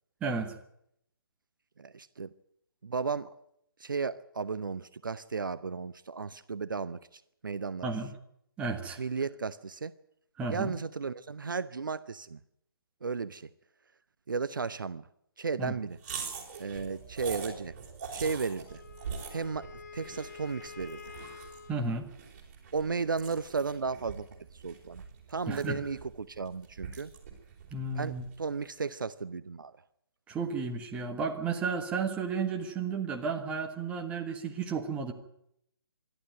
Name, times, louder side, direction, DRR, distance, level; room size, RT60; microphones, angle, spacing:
voice 1, 0.2-0.5 7.8-8.1 8.6-9.0 10.4-10.8 15.6-15.7 21.7-22.1 25.5-25.8 27.7-28.2 30.3-35.1, right 4 dB, 10° right, 4 dB, 1.5 m, -33 dB
voice 2, 1.8-2.3 2.8-3.4 3.8-7.9 9.0-9.9 10.5-12.4 13.0-13.5 14.3-15.1 15.4-16.0 16.6-17.7 18.1-18.8 19.3-19.7 19.9-21.0 22.7-27.1 27.9-29.7, right 5 dB, 60° right, 15 dB, 0.7 m, -34 dB
sound 1, 16.0-28.5, right 6 dB, 30° right, 4.5 m, -44 dB
Wind instrument woodwind instrument, 18.7-21.9, left 6 dB, 45° left, 1.3 m, -48 dB
25.5 x 12.0 x 9.2 m, 0.75 s
figure-of-eight pair, 145°, 13 cm